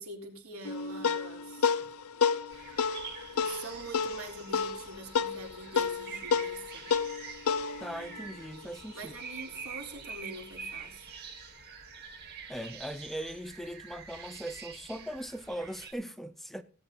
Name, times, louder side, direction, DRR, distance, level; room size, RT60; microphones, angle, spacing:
voice 1, 0.0-1.9 3.4-6.9 8.9-11.1, right 2 dB, 80° right, 3.9 m, -44 dB
sound 1, 0.6-9.4, left 6 dB, 85° left, 0.7 m, -31 dB
sound 2, 2.5-15.9, right 6 dB, 50° right, 2.9 m, -46 dB
voice 2, 7.8-9.1 12.5-16.6, equal, ahead, 0.6 m, -39 dB
18.0 x 8.8 x 3.9 m
head